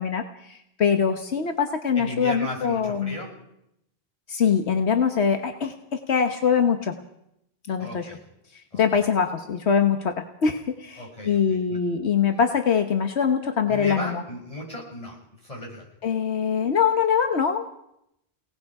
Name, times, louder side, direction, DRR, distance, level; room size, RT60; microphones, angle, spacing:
voice 1, 0.0-3.2 4.3-7.0 7.7-8.1 8.7-10.2 10.4-14.2 16.0-17.7, left 6 dB, 80° left, 6 dB, 1.5 m, -23 dB
voice 2, 1.9-3.3 7.8-8.2 8.7-9.0 11.0-11.6 13.7-15.9, left 1 dB, 30° left, -1 dB, 6.6 m, -36 dB
29.0 x 18.5 x 4.9 m, 0.80 s
omnidirectional pair, 1.1 m